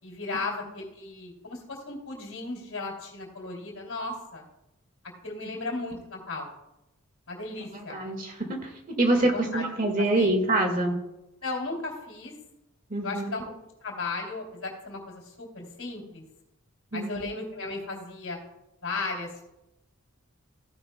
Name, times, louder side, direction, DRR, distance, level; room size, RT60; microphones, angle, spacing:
voice 1, 0.0-4.4 5.2-6.5 7.3-8.0 9.2-10.3 11.4-12.3 13.0-13.4 13.8-16.2 16.9-18.4 18.8-19.4, left 3 dB, 80° left, -4 dB, 2.8 m, -35 dB
voice 2, 7.7-8.7 9.0-11.0 12.9-13.3 16.9-17.2, right 2 dB, 40° right, 4 dB, 1.7 m, -25 dB
15.0 x 11.0 x 2.2 m, 0.91 s
head